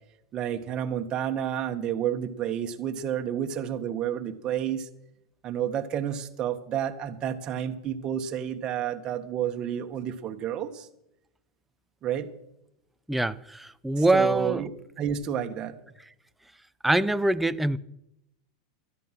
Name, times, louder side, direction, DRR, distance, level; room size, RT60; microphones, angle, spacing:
voice 1, 0.3-4.9 5.4-10.9 12.0-12.3 14.0-14.7 15.0-15.8, right 9 dB, 30° right, 1.6 m, -30 dB
voice 2, 13.1-14.6 16.8-17.8, right 2 dB, 5° right, 0.6 m, -24 dB
16.0 x 12.5 x 6.1 m
supercardioid pair, 130°, 3 cm